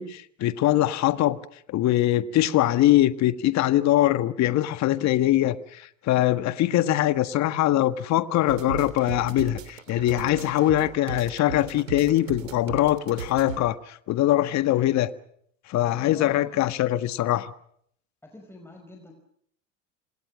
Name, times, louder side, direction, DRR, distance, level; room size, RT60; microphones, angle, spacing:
voice 1, 0.0-1.4 1.7-15.1 15.7-17.5, left 14 dB, 45° left, 12 dB, 1.6 m, -22 dB
sound 1, 8.5-13.6, right 9 dB, 85° right, 3.3 m, -37 dB
voice 2, 16.1-16.7 18.2-19.1, left 1 dB, 5° left, 3 dB, 5.1 m, -46 dB
27.5 x 27.5 x 6.4 m, 0.68 s
hypercardioid pair, 85°, 38 cm